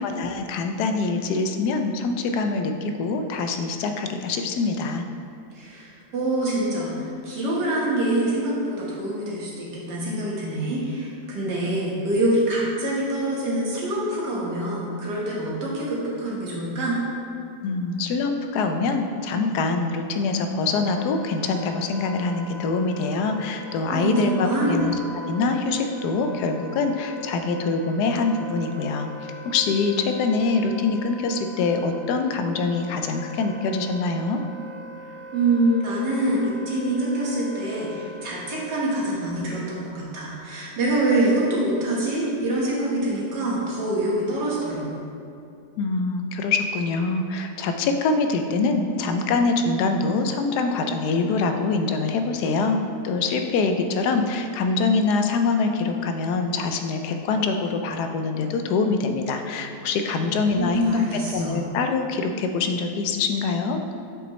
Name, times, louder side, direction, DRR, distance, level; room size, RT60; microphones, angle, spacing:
voice 1, 0.0-5.0 17.6-34.4 45.8-63.8, left 4 dB, 75° left, 5 dB, 1.1 m, -24 dB
voice 2, 5.5-17.0 23.9-24.8 35.3-45.0 60.1-61.6, right 1 dB, 85° right, -5 dB, 1.9 m, -25 dB
Wind instrument woodwind instrument, 20.7-38.9, left 1 dB, 50° left, 0.7 m, -41 dB
7.1 x 5.8 x 3.1 m, 2.5 s
omnidirectional pair, 1.8 m